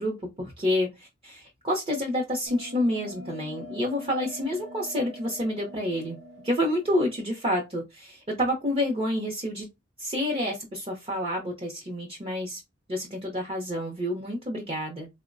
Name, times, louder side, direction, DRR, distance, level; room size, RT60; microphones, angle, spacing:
voice 1, 0.0-6.2 6.4-9.7 10.0-12.6 12.9-15.1, left 1 dB, 30° right, -1 dB, 0.6 m, -29 dB
Bell, 2.5-7.5, equal, 85° right, 0.6 m, -45 dB
3.7 x 2.1 x 2.4 m, 0.22 s
head